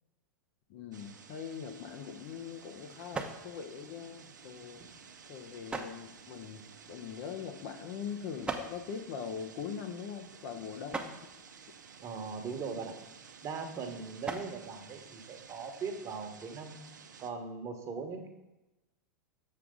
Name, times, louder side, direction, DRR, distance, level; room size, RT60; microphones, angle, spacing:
voice 1, 0.7-4.8 5.3-11.1 13.8-14.0, left 7 dB, 55° left, 5 dB, 0.8 m, -42 dB
sound 1, 0.9-17.3, right 6 dB, 85° right, 0.7 m, -54 dB
sound 2, 1.5-15.9, right 3 dB, 10° right, 0.8 m, -46 dB
voice 2, 12.0-13.0 13.4-16.7 17.2-18.3, right 5 dB, 30° right, 4 dB, 1.2 m, -40 dB
6.9 x 6.6 x 3.7 m, 1.0 s
hypercardioid pair, 100°, 10 cm